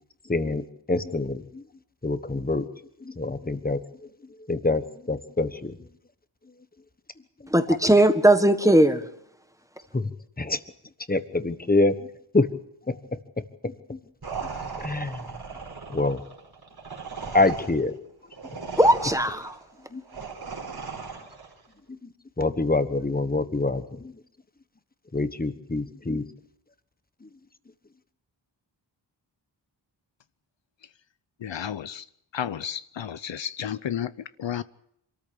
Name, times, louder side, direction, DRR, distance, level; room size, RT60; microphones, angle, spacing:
voice 1, 0.3-1.6 2.0-2.6 3.0-3.8 4.5-5.8 9.9-10.1 10.4-10.6 11.1-12.1 12.3-12.5 12.9-13.0 13.6-14.0 14.8-15.2 15.9-16.2 17.3-17.9 19.9-20.0 21.9-22.1 22.4-24.1 25.1-26.2 27.2-27.3, left 2 dB, 20° left, 1.3 m, -26 dB
voice 2, 7.5-9.1 18.8-19.6, right 1 dB, 5° right, 1.5 m, -18 dB
sound 1, 14.2-21.6, right 5 dB, 55° right, 4.3 m, -37 dB
voice 3, 31.4-32.0 32.3-34.6, left 9 dB, 70° left, 0.8 m, -32 dB
27.0 x 13.5 x 8.7 m
wide cardioid pair, 130°, 46 cm